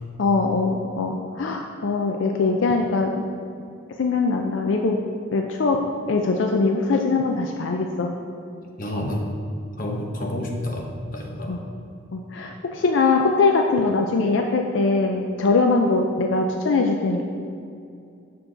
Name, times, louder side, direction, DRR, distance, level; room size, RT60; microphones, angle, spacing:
voice 1, 0.2-3.2 4.0-5.0 5.3-5.8 6.1-8.1 11.5-11.6 12.1-17.3, left 3 dB, 75° left, 3 dB, 0.4 m, -22 dB
voice 2, 8.8-9.3 9.8-11.6, left 1 dB, 45° left, 1 dB, 0.9 m, -29 dB
6.9 x 6.0 x 3.8 m, 2.5 s
head